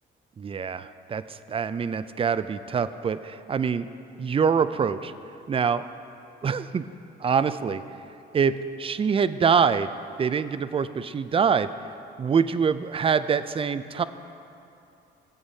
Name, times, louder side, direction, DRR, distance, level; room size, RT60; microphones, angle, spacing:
voice 1, 0.4-1.2 1.5-3.9 4.2-5.1 5.5-5.8 6.4-6.8 7.2-7.8 8.3-9.9 10.2-11.7 12.2-14.0, right 6 dB, 30° right, 13 dB, 0.4 m, -24 dB
17.5 x 7.9 x 2.8 m, 2.7 s
cardioid pair, 90°, 20 cm